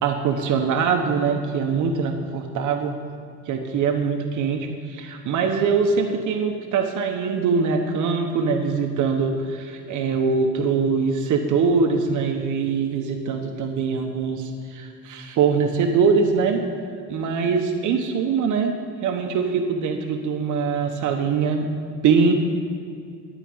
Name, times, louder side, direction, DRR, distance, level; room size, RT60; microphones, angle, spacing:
voice 1, 0.0-2.9 3.5-16.6 17.1-21.7 22.0-22.3, right 5 dB, 80° right, 4 dB, 1.0 m, -23 dB
14.0 x 5.1 x 8.8 m, 2.3 s
cardioid pair, 90°, 30 cm